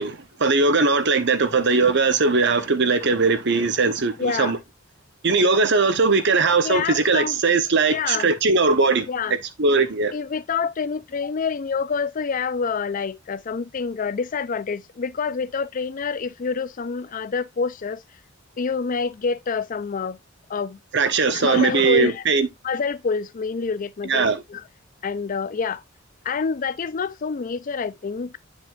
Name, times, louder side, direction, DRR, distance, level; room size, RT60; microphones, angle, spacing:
voice 1, 0.0-4.6 5.2-9.1 9.6-10.1 20.9-22.5 24.0-24.4, right 4 dB, 60° right, 1.0 m, -20 dB
voice 2, 4.2-4.6 6.6-7.4 7.9-8.3 9.1-9.4 10.1-18.0 18.6-20.2 20.5-20.8 21.3-24.6 25.0-25.8 26.2-28.3, left 5 dB, 40° left, 0.4 m, -27 dB
9.1 x 5.1 x 2.4 m
head